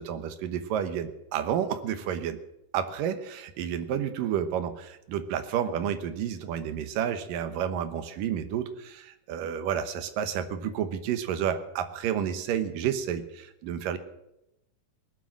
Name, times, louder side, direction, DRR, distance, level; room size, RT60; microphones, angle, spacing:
voice 1, 0.0-2.4 2.7-14.0, right 9 dB, 80° right, 10 dB, 2.7 m, -30 dB
19.5 x 7.7 x 7.3 m, 0.86 s
omnidirectional pair, 3.8 m